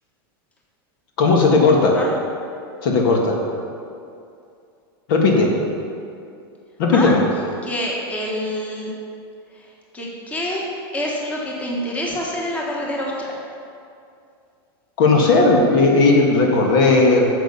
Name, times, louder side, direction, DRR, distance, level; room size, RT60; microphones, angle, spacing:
voice 1, 1.2-2.0 2.8-3.4 5.1-5.5 6.8-7.2 15.0-17.3, left 3 dB, 65° left, 0 dB, 1.7 m, -15 dB
voice 2, 7.6-8.9 9.5-9.7 9.9-10.7 10.9-13.4, left 1 dB, 10° left, -3 dB, 1.4 m, -26 dB
9.1 x 7.1 x 5.5 m, 2.5 s
supercardioid pair, 145°, 13 cm